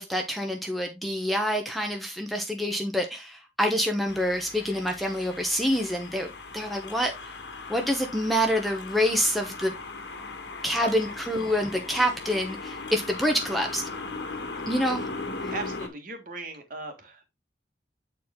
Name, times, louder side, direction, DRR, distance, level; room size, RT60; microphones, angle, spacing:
voice 1, 0.0-7.1 7.7-9.7 10.6-13.8 14.7-15.0 15.4-15.5, equal, ahead, 0.9 m, -27 dB
sound 1, 4.1-15.9, left 3 dB, 80° left, 1.4 m, -38 dB
voice 2, 14.4-15.1 15.5-17.3, right 2 dB, 50° right, 1.7 m, -39 dB
8.2 x 4.4 x 3.6 m
head